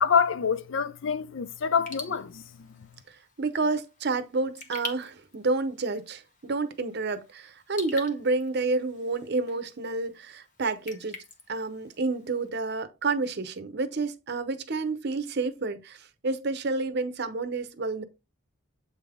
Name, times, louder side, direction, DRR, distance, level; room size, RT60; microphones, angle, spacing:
voice 1, 0.0-2.7, left 6 dB, 65° left, 0.5 m, -26 dB
Raindrop / Drip, 1.7-12.5, left 3 dB, 40° left, 1.2 m, -46 dB
voice 2, 3.4-11.2 11.5-18.0, right 3 dB, 50° right, 0.7 m, -29 dB
7.8 x 3.4 x 3.6 m
head